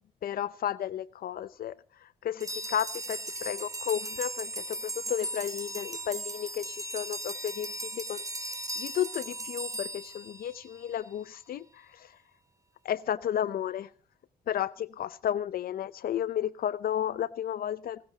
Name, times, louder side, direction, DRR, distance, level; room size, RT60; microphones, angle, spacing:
voice 1, 0.2-1.7 2.0-8.2 8.8-12.1 12.8-13.9 14.5-18.0, left 10 dB, 70° left, 16 dB, 0.6 m, -33 dB
sound 1, 2.4-10.9, right 1 dB, 20° right, 2.8 m, -37 dB
27.5 x 13.5 x 2.9 m, 0.38 s
cardioid pair, 80°, 16 cm